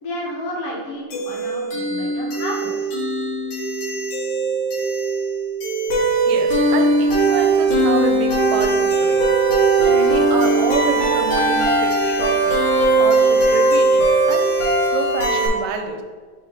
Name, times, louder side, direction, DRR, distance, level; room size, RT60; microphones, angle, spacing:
voice 1, 0.0-3.0, left 1 dB, 60° left, -4 dB, 2.0 m, -31 dB
sound 1, 1.1-15.5, right 2 dB, 85° left, 3.1 m, -19 dB
voice 2, 6.3-9.2 9.9-12.6 13.0-14.5 14.8-16.0, right 6 dB, 80° right, 5 dB, 1.9 m, -28 dB
6.0 x 4.1 x 4.0 m, 1.5 s
omnidirectional pair, 3.4 m